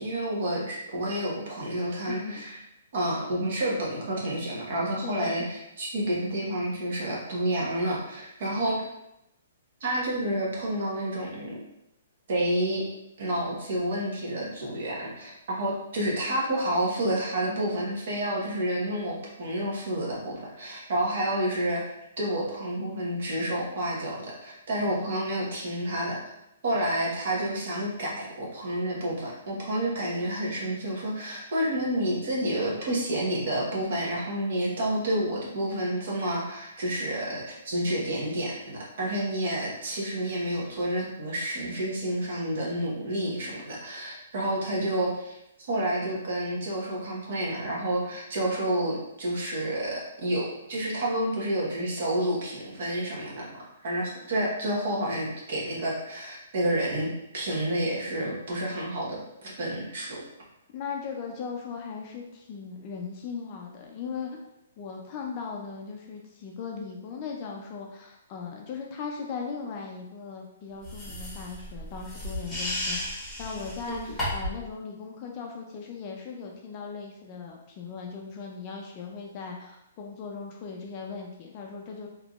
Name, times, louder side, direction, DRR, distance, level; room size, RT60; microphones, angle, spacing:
voice 1, 0.0-2.6 2.9-8.8 9.8-11.6 12.3-12.8 13.2-21.8 22.2-26.2 26.6-45.4 45.7-60.2 73.9-74.0, right 1 dB, 55° right, -4 dB, 1.2 m, -29 dB
voice 2, 2.1-2.5 5.0-5.5 60.7-64.3 64.8-82.1, left 5 dB, 30° left, 0 dB, 0.4 m, -38 dB
sound 1, 70.8-74.6, left 1 dB, 5° left, 1.2 m, -34 dB
3.4 x 2.8 x 2.4 m, 0.84 s
hypercardioid pair, 165°, 0 cm